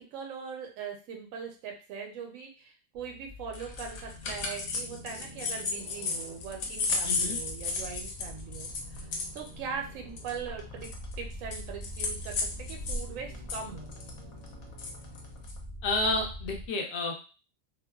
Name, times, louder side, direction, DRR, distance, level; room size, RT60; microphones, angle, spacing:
voice 1, 0.1-9.1 9.3-13.9, right 6 dB, 75° right, 3 dB, 1.0 m, -41 dB
sound 1, 2.9-16.7, left 1 dB, 45° right, 0.5 m, -45 dB
sound 2, 3.5-13.0 13.3-15.6, left 4 dB, 85° left, 1.0 m, -34 dB
voice 2, 7.0-7.4 15.8-17.2, left 2 dB, 60° left, 1 dB, 0.8 m, -30 dB
2.6 x 2.2 x 2.2 m, 0.35 s
omnidirectional pair, 1.5 m